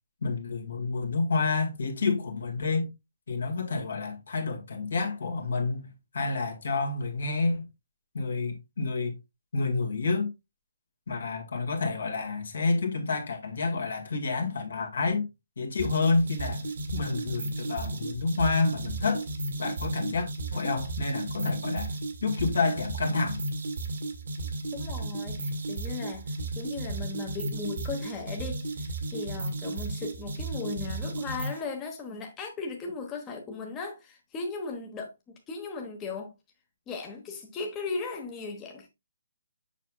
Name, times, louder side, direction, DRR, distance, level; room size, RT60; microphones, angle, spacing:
voice 1, 0.2-2.9 3.3-7.7 8.1-9.1 9.5-10.3 11.1-15.3 15.6-16.6 16.9-19.3 19.6-21.9 22.2-23.4, left 3 dB, 65° left, 1.8 m, -29 dB
sound 1, 15.8-31.6, right 2 dB, 60° right, 1.6 m, -34 dB
voice 2, 24.7-36.3 36.9-38.9, left 4 dB, 15° left, 1.1 m, -37 dB
7.2 x 5.9 x 2.3 m
figure-of-eight pair, 140°, 0 cm